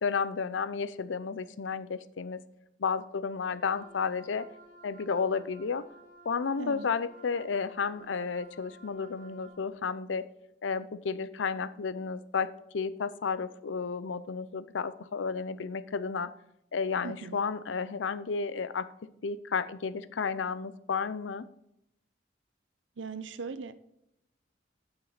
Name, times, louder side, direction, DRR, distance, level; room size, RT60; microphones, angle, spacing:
voice 1, 0.0-2.4 2.8-4.5 4.8-5.8 6.3-10.3 10.6-16.3 16.7-18.9 19.2-21.5, left 5 dB, 90° left, 15 dB, 0.5 m, -32 dB
Wind instrument woodwind instrument, 3.6-9.6, right 1 dB, 45° right, 1.7 m, -54 dB
voice 2, 6.6-6.9 17.0-17.4 23.0-23.7, right 4 dB, 85° right, 13 dB, 0.7 m, -39 dB
8.9 x 8.0 x 4.0 m, 0.79 s
head